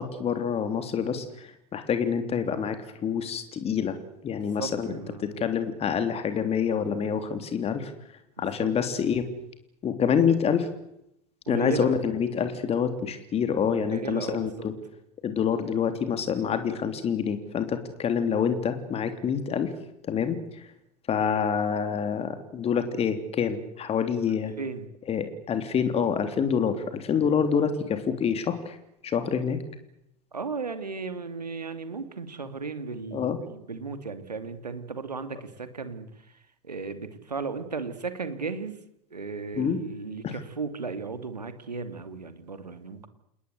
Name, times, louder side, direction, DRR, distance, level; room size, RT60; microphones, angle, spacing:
voice 1, 0.0-4.0 4.2-7.9 8.4-9.3 9.8-10.7 11.5-14.7 15.2-19.7 20.1-20.6 21.1-24.5 25.1-28.8 29.0-29.6 33.1-33.4 39.5-39.8 40.2-40.3, left 7 dB, 30° left, 9 dB, 3.4 m, -27 dB
voice 2, 4.3-5.4 8.4-8.7 11.5-11.9 13.8-14.7 24.6-24.9 27.1-27.3 30.3-38.8 39.1-43.1, right 4 dB, 85° right, 10 dB, 2.7 m, -35 dB
28.5 x 20.5 x 8.2 m, 0.79 s
figure-of-eight pair, 80°, 20 cm